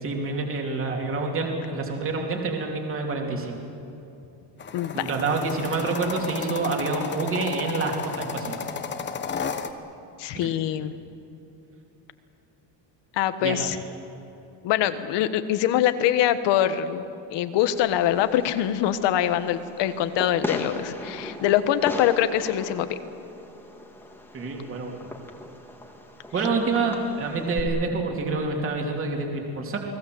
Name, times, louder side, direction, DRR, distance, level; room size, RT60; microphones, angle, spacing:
voice 1, 0.0-3.6 4.9-8.6 10.3-10.5 13.4-13.5 24.3-25.0 26.3-29.8, right 3 dB, 30° right, 1 dB, 3.1 m, -27 dB
sound 1, 4.6-9.7, left 6 dB, 25° left, 1.1 m, -33 dB
voice 2, 4.7-5.1 10.2-10.9 13.1-13.8 14.6-17.0 17.3-23.0, left 11 dB, 65° left, 11 dB, 1.5 m, -24 dB
Fireworks, 17.6-27.6, left 1 dB, 5° left, 1.8 m, -38 dB
29.5 x 20.0 x 7.9 m, 2.7 s
cardioid pair, 170°, 46 cm